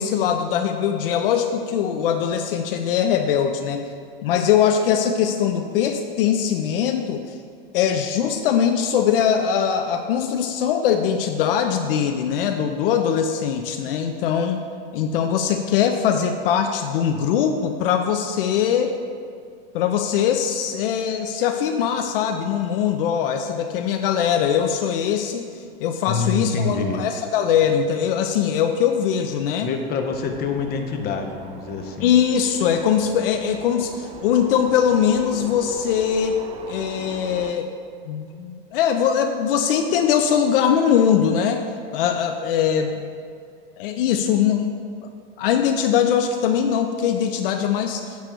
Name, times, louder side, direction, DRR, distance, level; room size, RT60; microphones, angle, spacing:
voice 1, 0.0-3.9 4.2-7.4 7.7-14.6 14.9-18.9 19.7-29.7 32.0-36.4 36.7-37.7 38.1-41.6 41.9-43.1 43.8-44.8 45.4-48.2, left 8 dB, 65° left, 5 dB, 0.6 m, -21 dB
voice 2, 26.1-27.1 29.6-32.1, left 4 dB, 30° left, 4 dB, 0.9 m, -26 dB
sound 1, 30.1-37.5, right 5 dB, 20° right, 0.4 m, -40 dB
9.2 x 3.3 x 6.7 m, 2.3 s
hypercardioid pair, 120°, 30 cm